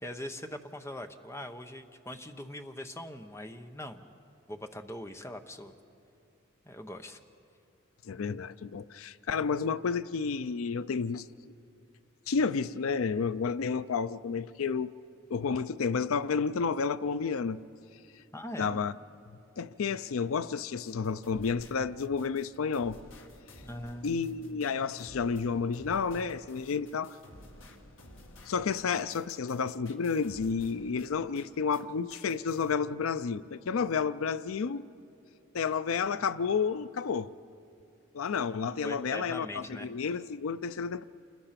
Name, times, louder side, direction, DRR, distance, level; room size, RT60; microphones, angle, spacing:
voice 1, 0.0-4.1 4.5-5.7 6.6-7.2 18.3-18.8 23.6-24.2 24.5-24.6 38.8-39.9, left 1 dB, 15° left, 0.8 m, -41 dB
voice 2, 8.0-11.3 12.3-14.9 15.3-17.6 18.6-18.9 19.6-23.0 24.0-27.2 28.5-34.9 35.5-37.3 38.1-41.0, left 5 dB, 90° left, 0.5 m, -31 dB
sound 1, 20.9-31.8 32.1-32.7, left 1 dB, 70° left, 1.7 m, -53 dB
28.0 x 20.5 x 5.9 m
head